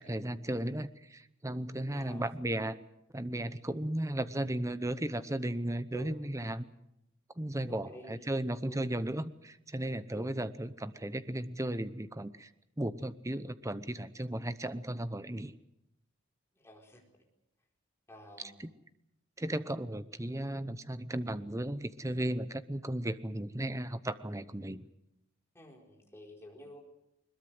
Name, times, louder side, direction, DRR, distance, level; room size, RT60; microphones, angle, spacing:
voice 1, 0.0-2.8 3.1-6.7 7.4-12.5 12.8-15.5 18.6-18.7 19.4-24.9, right 1 dB, 15° right, 13 dB, 0.8 m, -35 dB
voice 2, 1.9-2.3 5.9-6.1 7.7-8.8 10.1-10.3 16.5-17.0 18.1-18.6 25.5-26.8, left 1 dB, 10° left, 0 dB, 4.3 m, -50 dB
21.5 x 21.5 x 7.8 m, 0.83 s
head